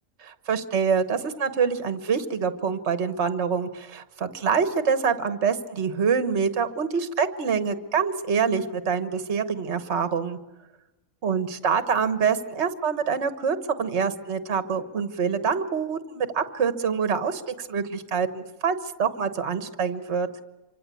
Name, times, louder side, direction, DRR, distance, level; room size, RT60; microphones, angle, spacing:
voice 1, 0.2-10.4 11.2-20.3, right 6 dB, 55° right, 11 dB, 1.5 m, -26 dB
26.5 x 24.5 x 8.4 m, 1.1 s
omnidirectional pair, 1.4 m